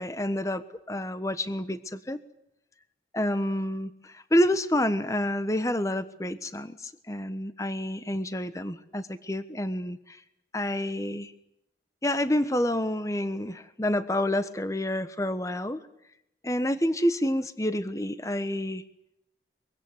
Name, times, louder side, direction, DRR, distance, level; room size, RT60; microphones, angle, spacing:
voice 1, 0.0-2.2 3.1-10.2 10.5-11.3 12.0-15.8 16.4-18.8, left 1 dB, 20° left, 11 dB, 1.2 m, -28 dB
24.0 x 24.0 x 8.0 m, 0.80 s
head